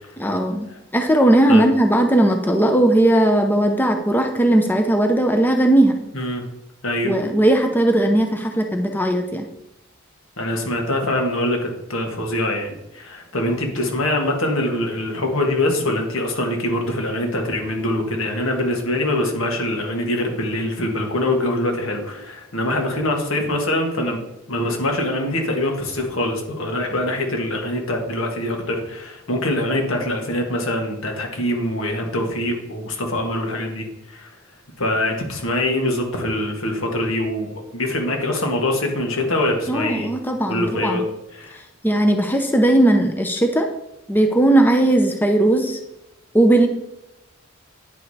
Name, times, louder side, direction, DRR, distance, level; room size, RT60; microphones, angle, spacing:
voice 1, 0.2-0.7 0.9-6.0 7.0-9.5 39.7-41.0 41.8-43.7 44.1-45.8 46.3-46.7, right 1 dB, 10° left, 5 dB, 0.6 m, -17 dB
voice 2, 6.1-6.4 6.8-7.1 10.4-24.2 24.5-34.4 34.8-40.1 40.5-41.0 41.3-41.6, left 1 dB, 85° left, 2 dB, 1.7 m, -24 dB
9.6 x 4.9 x 4.2 m, 0.89 s
head